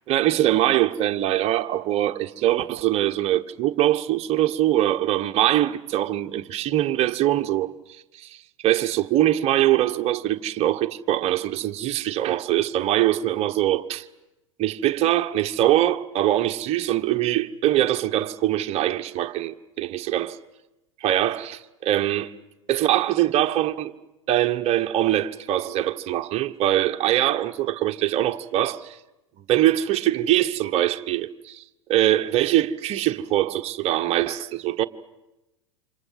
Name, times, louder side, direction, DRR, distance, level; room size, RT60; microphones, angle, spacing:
voice 1, 0.1-7.7 8.2-8.4 8.6-14.1 14.6-20.4 21.0-22.3 22.7-23.9 24.3-29.0 29.5-31.6 31.9-34.9, right 13 dB, 40° right, 1.3 m, -23 dB
28.0 x 26.0 x 7.7 m
hypercardioid pair, 90°, 17 cm